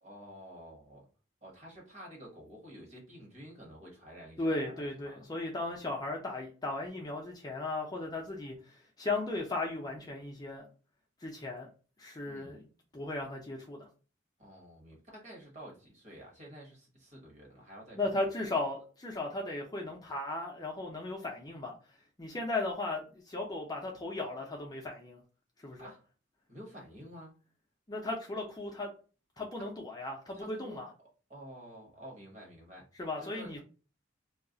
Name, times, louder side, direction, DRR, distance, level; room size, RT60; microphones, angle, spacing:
voice 1, 0.0-1.0 1.4-5.2 12.2-12.6 14.4-18.1 25.8-26.1 26.5-27.4 29.6-29.7 30.3-30.8 31.3-33.6, equal, 35° right, 1.0 m, -50 dB
voice 2, 4.4-10.6 11.2-11.7 12.0-12.6 12.9-13.9 17.9-21.8 22.2-25.2 25.6-25.9 27.9-28.9 29.4-30.9 33.0-33.6, left 2 dB, 20° left, 0.4 m, -36 dB
2.3 x 2.0 x 3.7 m
head